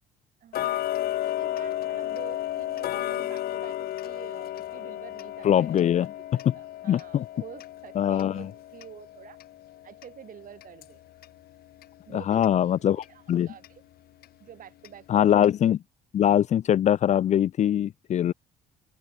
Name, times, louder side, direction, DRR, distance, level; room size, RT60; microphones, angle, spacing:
voice 1, 0.4-0.9 1.2-9.4 9.8-11.0 12.1-13.8 14.4-15.5 18.2-18.3, right 10 dB, 55° right, 4.2 m, -48 dB
Tick-tock, 0.5-11.4 11.8-11.9 12.4-12.5 13.0-13.1 13.6-13.7 14.2-14.3 14.8-14.9 15.4-15.5, left 13 dB, 65° left, 1.5 m, -33 dB
voice 2, 5.4-6.1 6.9-7.2 8.0-8.3 12.3-13.0 13.3-13.5 15.1-15.8 16.1-18.3, left 10 dB, 45° left, 0.5 m, -22 dB
open air
cardioid pair, 110°, 17 cm